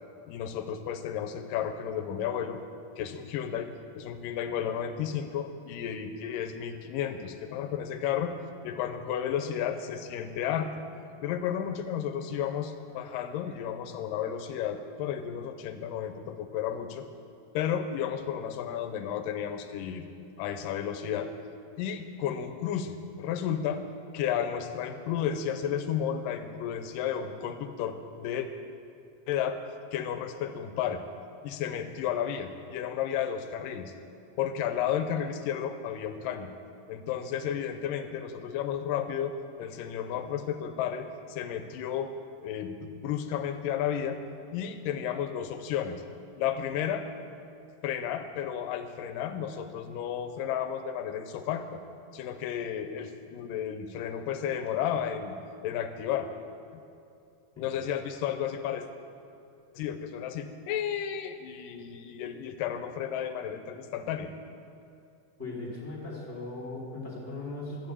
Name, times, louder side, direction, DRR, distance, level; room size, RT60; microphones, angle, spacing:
voice 1, 0.3-2.6 3.0-8.4 8.6-10.7 11.2-17.1 17.5-20.1 20.4-21.3 21.8-23.8 24.1-28.5 29.3-29.6 29.9-31.0 31.4-33.9 34.4-36.5 36.9-39.3 39.6-42.1 42.4-44.2 44.5-46.0 46.4-47.1 47.8-51.8 52.1-55.4 55.6-56.3 57.6-58.9 59.8-64.3 67.7-67.8, left 9 dB, 85° left, 8 dB, 2.3 m, -32 dB
voice 2, 65.4-67.9, left 2 dB, 5° left, -6 dB, 3.0 m, -38 dB
13.5 x 7.1 x 8.4 m, 2.6 s
omnidirectional pair, 3.8 m